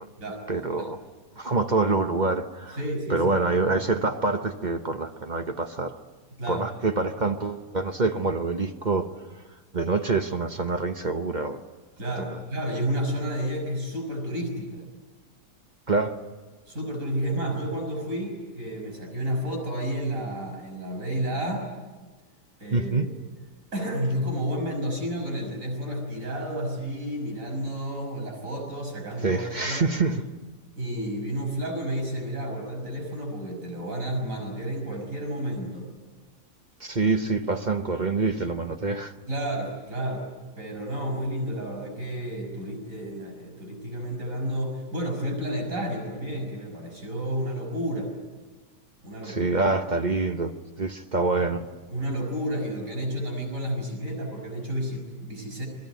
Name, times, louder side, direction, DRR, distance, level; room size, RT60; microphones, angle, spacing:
voice 1, 0.5-1.0 1.4-2.8 3.1-6.0 6.5-9.1 9.7-11.6 15.9-16.2 22.7-23.1 29.2-30.2 36.8-39.1 49.2-50.5 50.8-51.6, right 3 dB, 35° right, 1.0 m, -26 dB
voice 2, 2.8-3.2 6.4-6.6 12.0-14.8 16.7-21.7 22.6-23.1 23.7-29.9 30.8-35.9 37.5-37.7 39.3-40.3 40.6-48.1 49.0-49.6 51.4-51.5 51.9-55.7, equal, 55° right, 6.4 m, -31 dB
28.0 x 21.0 x 9.2 m
omnidirectional pair, 1.7 m